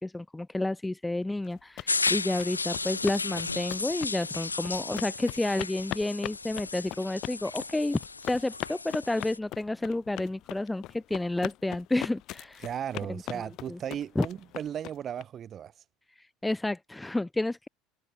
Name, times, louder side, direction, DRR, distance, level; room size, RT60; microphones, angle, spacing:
voice 1, 0.0-8.0 8.3-12.6 13.1-13.2 13.7-13.8 14.1-14.2 16.4-17.7, left 2 dB, 10° left, 1.4 m, -30 dB
sound 1, 1.5-15.2, left 16 dB, 50° left, 1.5 m, -40 dB
sound 2, 1.9-9.4, left 4 dB, 85° left, 0.7 m, -34 dB
voice 2, 12.6-15.8, right 9 dB, 35° right, 3.5 m, -36 dB
figure-of-eight pair, 70°, 0 cm